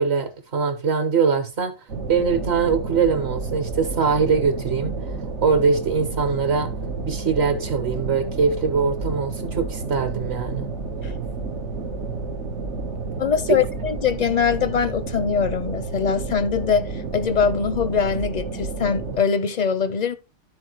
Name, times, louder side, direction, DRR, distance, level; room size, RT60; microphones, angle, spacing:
voice 1, 0.0-1.7 2.1-4.9 5.4-6.7 7.0-10.7 13.5-13.6, right 5 dB, 65° right, 1.5 m, -22 dB
sound 1, 1.9-19.2, right 3 dB, 85° right, 1.5 m, -30 dB
voice 2, 13.2-20.1, left 6 dB, 50° left, 0.5 m, -22 dB
13.0 x 4.4 x 3.0 m
omnidirectional pair, 1.2 m